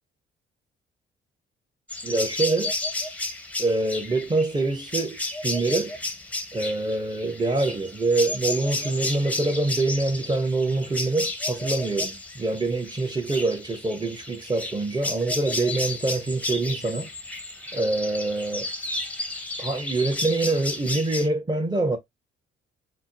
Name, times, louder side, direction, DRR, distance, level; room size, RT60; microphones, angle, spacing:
sound 1, 1.9-21.3, left 2 dB, 5° left, 0.8 m, -32 dB
voice 1, 2.0-2.7 3.6-6.0 6.5-17.1 17.7-18.7 19.6-22.0, right 2 dB, 20° right, 0.9 m, -25 dB
4.3 x 2.1 x 2.8 m
cardioid pair, 90°, 20 cm